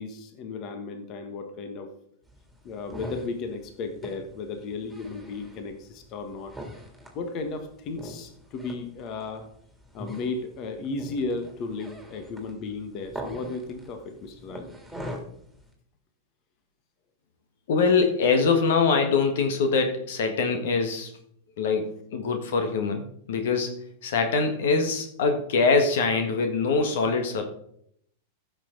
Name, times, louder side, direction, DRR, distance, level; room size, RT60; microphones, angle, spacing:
voice 1, 0.0-1.9 2.6-6.5 7.1-9.5 9.9-14.8, left 3 dB, 40° left, 6 dB, 1.6 m, -34 dB
sound 1, 2.3-15.7, equal, ahead, 3.1 m, -43 dB
voice 2, 17.7-21.1 21.6-23.0 23.3-27.5, left 4 dB, 65° left, 6 dB, 1.7 m, -23 dB
15.0 x 6.8 x 4.0 m, 0.69 s
figure-of-eight pair, 95°, 0 cm